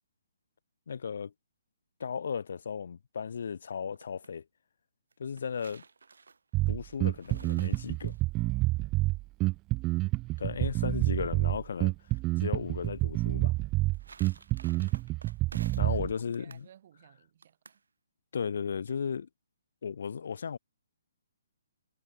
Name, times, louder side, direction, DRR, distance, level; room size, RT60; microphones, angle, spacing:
voice 1, 0.9-1.3 2.0-4.4 5.2-5.8 6.7-8.1 10.4-11.9 12.4-13.6 15.8-16.7 18.3-19.3 19.8-20.6, left 6 dB, 65° left, 1.4 m, -35 dB
sound 1, 3.7-4.3 5.1-8.4 13.6-16.0 16.3-16.7 17.4-17.8, right 4 dB, 80° right, 5.4 m, -53 dB
Bass guitar, 6.5-16.1, right 20 dB, 20° right, 0.5 m, -28 dB
voice 2, 15.8-17.8, right 10 dB, 45° right, 5.6 m, -58 dB
hypercardioid pair, 150°, 0 cm